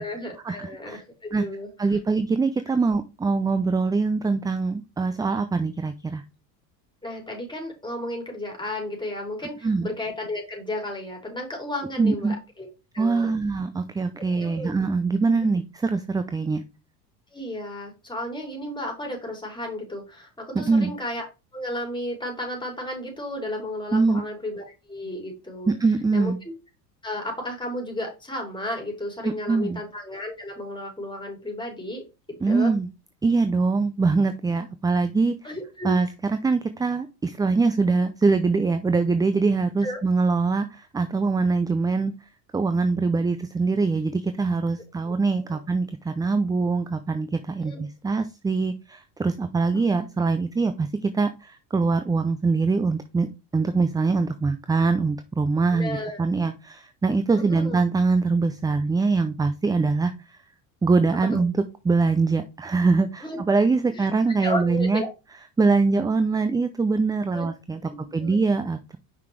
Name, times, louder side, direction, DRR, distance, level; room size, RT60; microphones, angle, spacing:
voice 1, 0.0-2.0 7.0-12.7 12.9-13.3 14.4-14.7 17.3-21.2 21.5-25.7 26.1-26.3 27.0-32.7 35.4-36.0 39.8-40.0 45.1-45.2 45.4-45.6 47.6-47.8 49.7-49.8 55.7-56.2 57.3-57.8 61.3-61.4 63.2-63.4 63.9-64.1 64.4-65.1 67.3-67.5 67.9-68.4, left 1 dB, 10° left, 0 dB, 3.9 m, -33 dB
voice 2, 1.8-6.2 9.6-9.9 12.0-12.4 13.0-16.6 20.6-20.9 23.9-24.2 25.7-26.4 29.2-29.8 32.4-32.9 33.2-35.3 35.8-42.1 42.5-53.3 53.5-60.1 60.8-61.5 61.8-65.0 65.6-67.8 68.1-69.0, right 4 dB, 10° right, 10 dB, 0.4 m, -23 dB
5.8 x 5.8 x 3.3 m, 0.28 s
hypercardioid pair, 90°, 48 cm